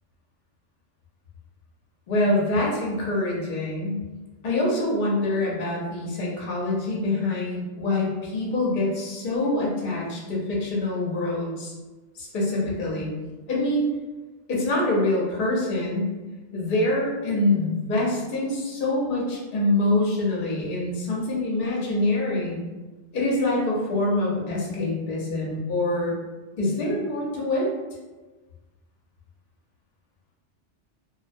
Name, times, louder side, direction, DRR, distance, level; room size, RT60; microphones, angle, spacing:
voice 1, 2.1-4.0 4.4-11.7 12.1-13.1 13.5-13.9 14.5-16.1 16.5-22.6 23.1-26.1 26.6-27.7, left 2 dB, 50° left, -4 dB, 0.7 m, -25 dB
2.3 x 2.1 x 2.5 m, 1.2 s
omnidirectional pair, 1.2 m